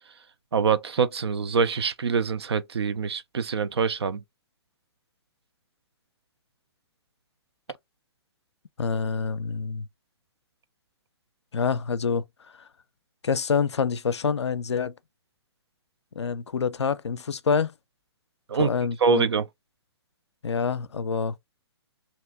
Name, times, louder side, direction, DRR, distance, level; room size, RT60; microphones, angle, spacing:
voice 1, 0.5-4.2 18.5-18.7 19.0-19.4, right 5 dB, 70° right, 0.5 m, -24 dB
voice 2, 8.8-9.9 11.5-12.2 13.2-14.9 16.2-17.7 18.6-19.3 20.4-21.3, left 5 dB, 80° left, 0.4 m, -26 dB
2.9 x 2.6 x 3.3 m
figure-of-eight pair, 125°, 14 cm